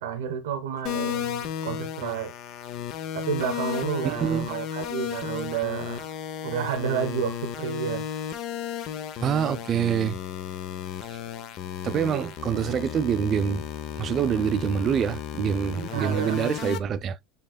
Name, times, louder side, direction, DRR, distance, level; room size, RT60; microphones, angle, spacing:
voice 1, 0.0-2.3 3.1-6.1 6.4-8.1 12.1-12.3 15.7-16.4, right 8 dB, 85° right, 0.7 m, -30 dB
sound 1, 0.8-16.8, left 10 dB, 55° left, 0.6 m, -34 dB
voice 2, 4.0-4.5 9.2-10.2 11.1-11.2 11.8-13.6 14.0-17.2, right 8 dB, 40° right, 0.4 m, -26 dB
6.6 x 3.6 x 2.2 m
supercardioid pair, 110°, 0 cm